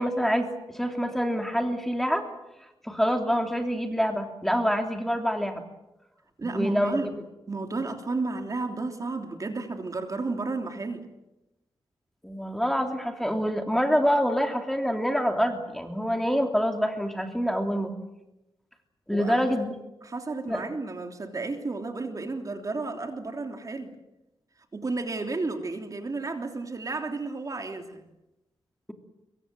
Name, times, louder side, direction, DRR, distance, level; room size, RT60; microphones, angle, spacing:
voice 1, 0.0-2.2 2.8-5.6 6.4-7.2 12.2-17.9 19.1-19.7 20.5-20.6, equal, 5° left, 4 dB, 3.1 m, -26 dB
voice 2, 6.4-7.1 7.5-11.1 19.1-19.4 20.0-23.9 24.7-28.0, right 3 dB, 40° right, 5 dB, 3.2 m, -32 dB
25.0 x 23.0 x 7.8 m, 0.93 s
wide cardioid pair, 100°, 9 cm